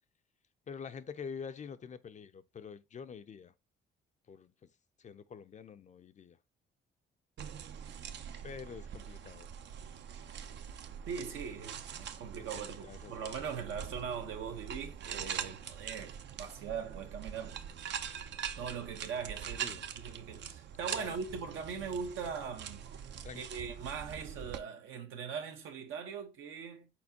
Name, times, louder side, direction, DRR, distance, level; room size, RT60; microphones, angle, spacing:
voice 1, 0.7-3.5 4.3-4.5 5.0-6.4 8.4-9.5 12.5-13.3 19.6-19.9 20.9-21.1 23.2-23.4, left 6 dB, 40° left, 0.5 m, -46 dB
sound 1, 7.4-24.6, right 8 dB, 60° right, 0.6 m, -43 dB
voice 2, 11.1-17.6 18.6-22.9 23.3-26.9, right 6 dB, 80° right, 1.1 m, -41 dB
4.4 x 4.4 x 2.8 m
cardioid pair, 90°, 20 cm